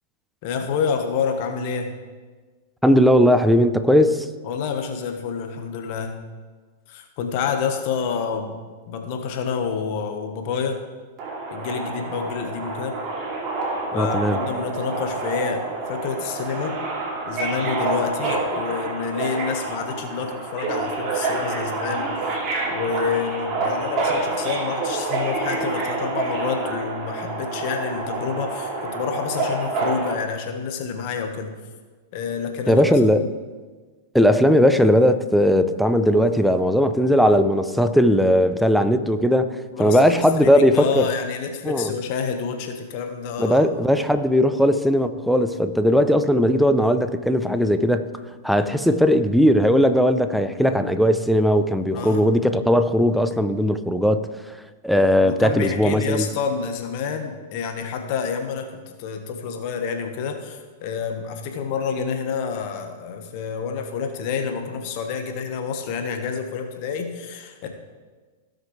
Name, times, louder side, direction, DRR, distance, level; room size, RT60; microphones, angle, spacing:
voice 1, 0.4-1.9 4.4-6.2 6.9-8.6 8.9-10.8 11.5-13.0 13.9-15.6 15.9-16.8 17.2-22.4 22.7-31.5 32.1-32.8 33.2-33.3 39.7-43.6 51.9-52.3 55.2-67.7, left 6 dB, 50° left, 5 dB, 1.4 m, -28 dB
voice 2, 2.8-4.3 13.9-14.4 32.7-33.2 34.1-41.1 41.7-41.9 43.4-48.1 48.4-54.2 54.8-56.3, equal, ahead, 9 dB, 0.7 m, -18 dB
Subway metro underground, 11.2-30.1, right 3 dB, 40° right, 2.9 m, -28 dB
17.5 x 6.5 x 3.3 m, 1.4 s
hypercardioid pair, 100°, 0 cm